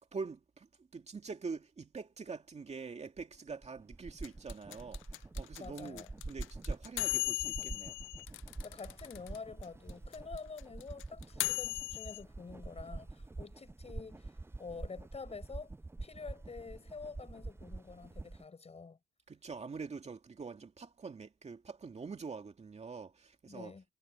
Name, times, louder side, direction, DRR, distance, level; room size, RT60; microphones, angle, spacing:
voice 1, 0.0-8.0 19.3-23.7, right 4 dB, 35° right, 2.4 m, -45 dB
sound 1, 3.2-18.4, right 2 dB, 10° right, 0.7 m, -46 dB
sound 2, 4.2-9.4 9.6-9.7 9.9-12.2, left 18 dB, 90° left, 0.6 m, -37 dB
voice 2, 5.6-6.1 8.6-14.3 14.6-15.7 16.0-19.0 23.5-23.8, left 4 dB, 30° left, 6.1 m, -47 dB
cardioid pair, 90°, 20 cm